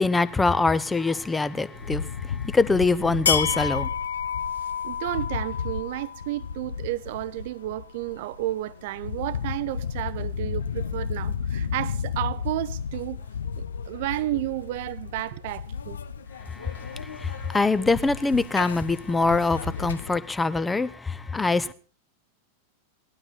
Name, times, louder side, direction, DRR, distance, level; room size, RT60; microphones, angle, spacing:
voice 1, 0.0-3.9 16.4-21.7, left 3 dB, 10° left, 0.8 m, -24 dB
sound 1, 1.7-20.2, left 7 dB, 65° left, 0.7 m, -32 dB
voice 2, 4.8-13.2 13.6-16.0, right 16 dB, 50° right, 0.6 m, -32 dB
17.5 x 12.0 x 4.4 m
figure-of-eight pair, 90°, 0 cm